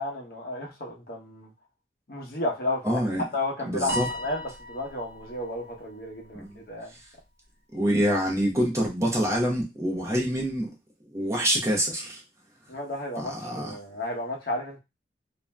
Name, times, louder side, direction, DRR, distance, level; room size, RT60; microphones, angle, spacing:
voice 1, 0.0-1.5 2.1-3.0 3.3-4.4 4.7-6.9 12.7-14.8, left 2 dB, 50° left, 0 dB, 0.8 m, -32 dB
voice 2, 2.8-3.2 3.7-4.1 6.3-6.6 7.7-10.7 11.1-12.2 13.2-13.8, equal, 15° right, -1 dB, 0.5 m, -26 dB
Piano, 3.9-6.4, left 1 dB, 70° right, 1.0 m, -36 dB
2.5 x 2.0 x 3.2 m, 0.24 s
head